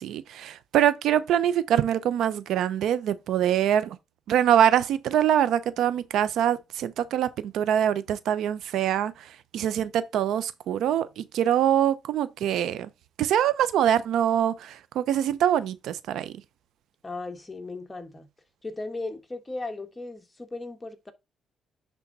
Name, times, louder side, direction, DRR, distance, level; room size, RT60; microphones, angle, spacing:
voice 1, 0.0-4.0 4.3-12.9 13.2-16.3, right 10 dB, 80° right, 0.7 m, -24 dB
voice 2, 17.0-18.3 18.6-21.1, left 2 dB, 20° left, 1.3 m, -36 dB
9.9 x 3.6 x 4.1 m
cardioid pair, 90°, 0 cm